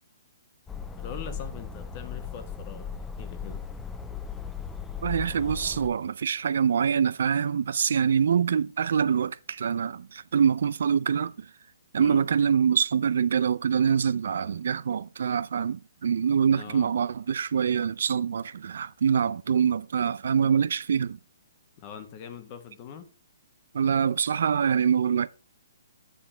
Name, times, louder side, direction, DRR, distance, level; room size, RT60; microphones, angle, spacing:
sound 1, 0.7-5.9, left 6 dB, 10° left, 0.6 m, -37 dB
voice 1, 1.0-2.9 3.2-3.6 12.0-12.2 16.5-16.9 21.8-23.1, left 7 dB, 35° left, 1.3 m, -42 dB
voice 2, 5.0-11.5 11.9-21.2 23.7-25.3, right 7 dB, 70° right, 0.3 m, -25 dB
9.1 x 4.3 x 4.3 m
hypercardioid pair, 150°, 0 cm